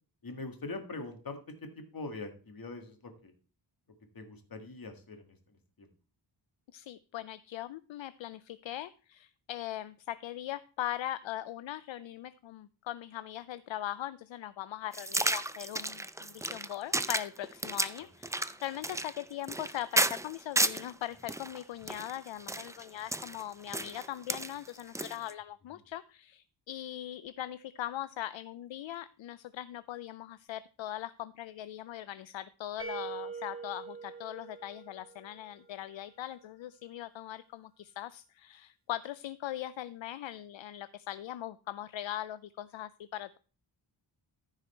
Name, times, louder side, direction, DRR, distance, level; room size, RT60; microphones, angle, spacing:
voice 1, 0.2-3.3 4.1-5.9 18.0-18.1 25.8-25.9, left 3 dB, 50° left, 5 dB, 2.0 m, -43 dB
voice 2, 6.7-43.4, left 13 dB, 75° left, 15 dB, 0.5 m, -40 dB
sound 1, 14.9-20.9 21.3-25.3, right 2 dB, 5° right, 0.4 m, -32 dB
sound 2, 32.8-35.7, right 5 dB, 30° right, 1.4 m, -43 dB
14.5 x 4.8 x 4.4 m, 0.38 s
wide cardioid pair, 100°, 46 cm